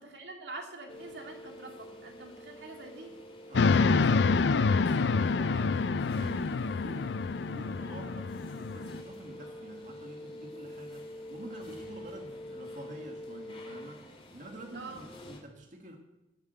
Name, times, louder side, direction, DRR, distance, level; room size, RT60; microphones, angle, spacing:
voice 1, 0.0-3.1 14.7-15.1, right 2 dB, 75° right, 2 dB, 2.4 m, -45 dB
sound 1, 0.9-15.4, left 1 dB, 30° left, 2.5 m, -46 dB
sound 2, 3.5-9.0, left 4 dB, 80° left, 0.5 m, -27 dB
voice 2, 3.5-14.0 14.3-16.0, right 1 dB, 45° right, 2 dB, 1.6 m, -47 dB
15.0 x 7.2 x 7.7 m, 0.97 s
head